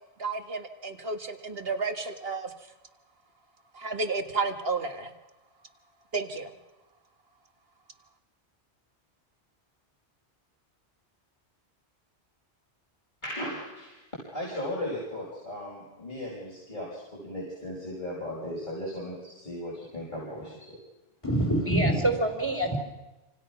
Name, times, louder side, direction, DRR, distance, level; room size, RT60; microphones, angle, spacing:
voice 1, 0.2-2.7 3.7-5.1 6.1-6.6, right 4 dB, 65° right, 6 dB, 2.0 m, -32 dB
voice 2, 13.2-14.0 14.3-20.6, left 1 dB, 45° left, -6 dB, 6.3 m, -36 dB
voice 3, 21.2-22.8, right 1 dB, 25° left, 1 dB, 4.0 m, -25 dB
28.0 x 26.5 x 6.0 m, 1.1 s
omnidirectional pair, 1.1 m